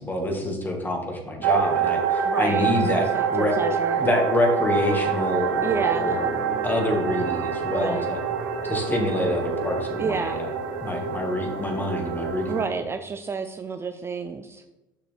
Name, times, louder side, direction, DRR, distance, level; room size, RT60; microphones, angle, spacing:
voice 1, 0.0-3.6 4.0-6.4 6.6-8.2 8.6-10.5 10.8-12.6, left 1 dB, 15° left, 2 dB, 1.8 m, -26 dB
sound 1, 1.4-12.7, right 6 dB, 85° right, 0.8 m, -27 dB
voice 2, 2.2-4.0 5.6-6.3 7.7-8.1 10.0-10.4 12.5-14.6, right 5 dB, 20° right, 8 dB, 0.4 m, -30 dB
sound 2, 5.4-12.8, left 1 dB, 50° left, 1.8 m, -39 dB
6.8 x 6.1 x 3.4 m, 1.0 s
supercardioid pair, 90°, 11 cm